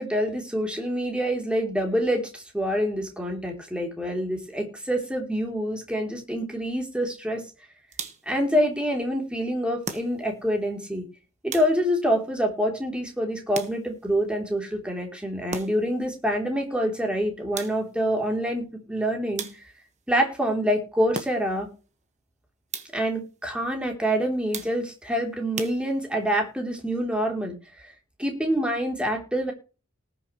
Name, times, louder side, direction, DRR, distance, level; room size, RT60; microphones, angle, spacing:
voice 1, 0.0-7.4 8.2-11.1 11.4-19.5 20.1-21.7 22.9-27.9 28.2-29.5, equal, 5° right, 1 dB, 3.2 m, -26 dB
sound 1, 7.9-8.4 9.8-10.5 11.5-12.1 13.5-14.1 15.5-16.0 17.6-18.1 19.4-19.9 21.1-21.7 22.7-23.2 24.5-25.0 25.6-26.3, right 5 dB, 35° right, 1.4 m, -38 dB
19.0 x 7.1 x 3.1 m, 0.34 s
head